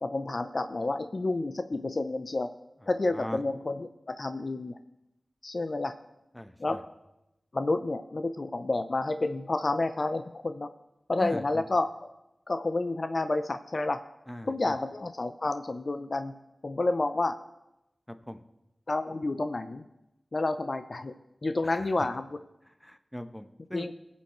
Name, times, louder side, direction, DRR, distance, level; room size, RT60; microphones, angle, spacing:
voice 1, 0.0-2.5 2.9-4.7 5.4-5.9 6.6-6.8 7.5-10.7 11.1-11.9 12.5-14.0 14.5-16.4 16.6-17.4 18.9-19.8 20.3-21.1 21.4-22.4 23.7-23.9, left 2 dB, 55° left, 9 dB, 0.5 m, -30 dB
voice 2, 3.1-3.4 6.3-6.8 11.2-11.6 14.3-14.8 18.3-18.4 21.6-22.1 22.7-23.9, equal, 10° left, 9 dB, 0.8 m, -40 dB
20.0 x 7.1 x 3.1 m, 0.91 s
wide cardioid pair, 50°, 0 cm